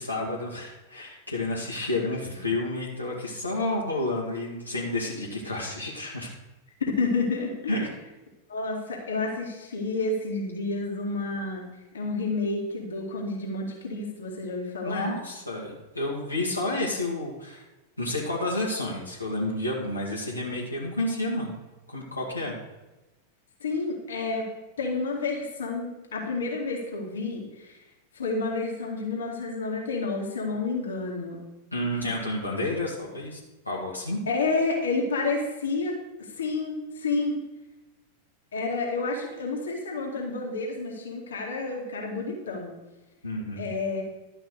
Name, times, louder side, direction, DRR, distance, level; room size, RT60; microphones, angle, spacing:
voice 1, 0.0-6.3 7.7-7.9 14.8-17.6 18.0-21.6 21.9-22.5 31.7-33.4 33.7-34.2 43.2-43.7, left 2 dB, 85° left, -4 dB, 2.0 m, -30 dB
voice 2, 6.9-7.8 8.5-11.6 11.9-15.1 23.6-24.5 24.8-27.8 28.1-31.4 34.3-35.9 36.2-37.4 38.5-42.7 43.6-44.0, left 3 dB, 65° left, 0 dB, 2.3 m, -30 dB
12.0 x 5.6 x 6.5 m, 1.1 s
figure-of-eight pair, 90°, 0 cm